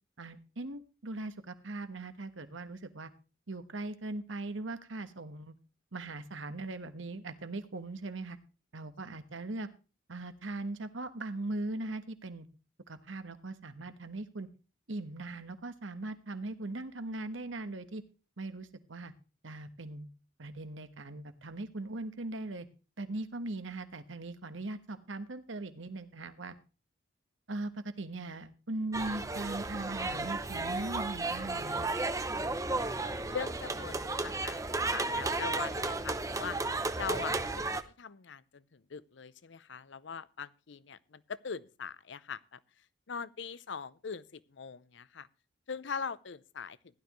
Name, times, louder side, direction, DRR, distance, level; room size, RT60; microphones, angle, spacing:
voice 1, 0.2-3.1 3.5-5.5 5.9-8.4 8.7-9.7 10.1-12.5 12.9-14.5 14.9-18.0 18.4-19.1 19.4-20.1 20.4-22.7 23.0-26.6 27.5-31.9, right 2 dB, 80° right, 1.3 m, -40 dB
sound 1, 28.9-37.8, right 3 dB, 15° right, 0.7 m, -34 dB
voice 2, 33.3-36.6 37.0-42.6 43.1-45.3 45.7-46.8, left 5 dB, 70° left, 0.6 m, -41 dB
16.0 x 12.0 x 3.1 m
head